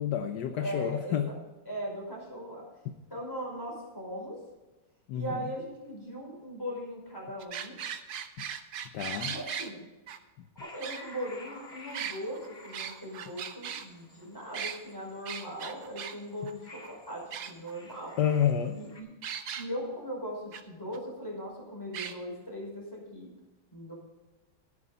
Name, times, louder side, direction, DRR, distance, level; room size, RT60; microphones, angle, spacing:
voice 1, 0.0-1.3 5.1-5.4 8.9-9.3 18.2-18.8, left 9 dB, 65° left, 1.2 m, -29 dB
voice 2, 0.5-1.3 1.7-2.6 3.1-4.4 5.1-7.7 9.2-9.8 10.6-18.1 18.7-19.1 19.5-23.3 23.7-23.9, equal, 10° left, 5.2 m, -39 dB
sound 1, 7.4-9.7 10.1-10.2 10.8-11.5 11.9-13.8 14.5-14.8 15.3-16.1 16.5-16.6 16.8-16.9 17.3-17.9 19.2-19.6 20.5-20.6 20.9-21.0 21.9-22.1, right 8 dB, 60° right, 1.3 m, -38 dB
sound 2, 10.6-19.0, left 2 dB, 30° left, 2.1 m, -53 dB
13.5 x 11.0 x 4.1 m
omnidirectional pair, 2.2 m